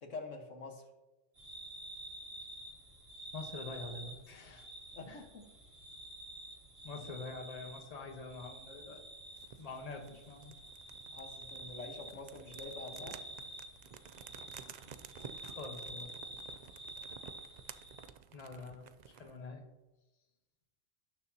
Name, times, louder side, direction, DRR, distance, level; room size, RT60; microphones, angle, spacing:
voice 1, 0.0-0.9 4.9-5.5 11.1-13.2, left 3 dB, 70° left, 3 dB, 1.7 m, -46 dB
sound 1, 1.4-18.1, right 1 dB, 50° right, 2.1 m, -49 dB
voice 2, 3.3-4.7 5.1-5.2 6.8-9.0 9.6-10.6 15.5-16.2 18.3-19.6, left 3 dB, 30° left, 3 dB, 1.2 m, -46 dB
sound 2, 9.4-19.4, right 7 dB, 80° right, 0.3 m, -53 dB
17.5 x 6.8 x 2.8 m, 1.1 s
omnidirectional pair, 1.3 m